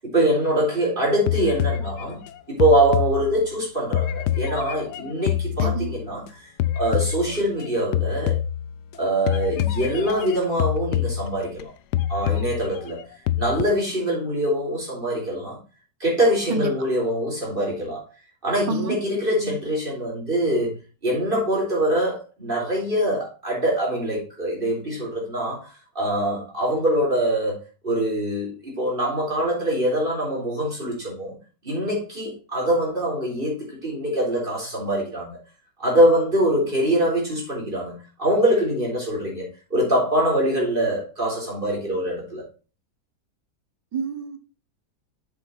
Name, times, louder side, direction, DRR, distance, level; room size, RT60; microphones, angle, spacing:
voice 1, 0.0-2.2 2.5-6.5 6.7-8.4 9.0-11.7 12.1-13.0 13.4-15.6 16.0-18.0 18.4-20.7 21.0-31.3 31.6-35.4 35.8-42.4, right 1 dB, 30° right, 4.3 m, -24 dB
sound 1, 1.3-3.6 3.9-6.3 6.6-7.7 7.9-8.9 9.3-11.6 11.9-13.6, left 11 dB, 75° left, 1.2 m, -26 dB
voice 2, 43.9-44.4, right 4 dB, 90° right, 1.8 m, -28 dB
7.4 x 6.4 x 4.2 m
omnidirectional pair, 1.8 m